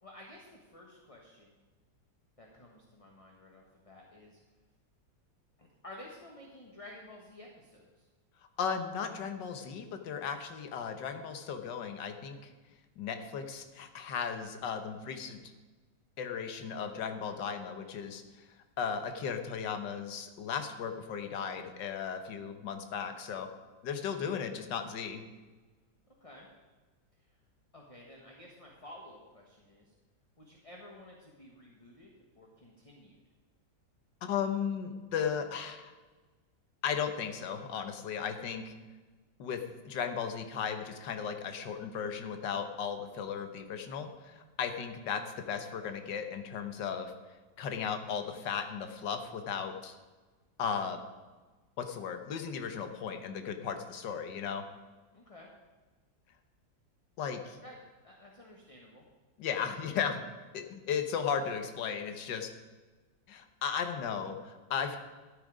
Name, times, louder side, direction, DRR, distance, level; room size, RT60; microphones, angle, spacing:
voice 1, 0.0-1.6 2.4-4.4 5.6-8.1 26.1-26.5 27.7-29.9 30.4-33.2 55.1-55.5 57.6-59.1, left 1 dB, 20° left, -1 dB, 1.2 m, -52 dB
voice 2, 8.6-12.4 13.0-15.4 16.2-18.2 18.8-23.5 23.8-25.2 34.2-35.9 36.8-38.7 39.4-47.1 47.6-49.9 50.6-51.0 51.8-54.6 57.2-57.6 59.4-60.2 60.5-62.5 63.3-65.0, left 7 dB, 70° left, 7 dB, 1.7 m, -36 dB
13.0 x 9.2 x 5.0 m, 1.3 s
omnidirectional pair, 2.0 m